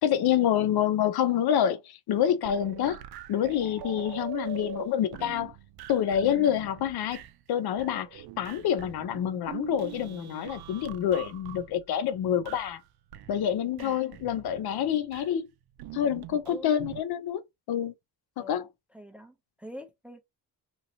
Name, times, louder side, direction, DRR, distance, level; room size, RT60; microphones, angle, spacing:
voice 1, 0.0-3.0 3.3-5.5 5.9-7.2 7.5-12.8 13.3-15.5 15.9-17.9 18.5-18.6, left 10 dB, 70° left, 0.5 m, -27 dB
sound 1, 2.2-7.5 7.8-12.9 13.1-15.3 15.8-17.0, right 11 dB, 70° right, 0.5 m, -43 dB
voice 2, 18.4-18.7 18.9-20.2, equal, 5° right, 0.5 m, -45 dB
3.0 x 2.7 x 2.6 m
cardioid pair, 125°, 39 cm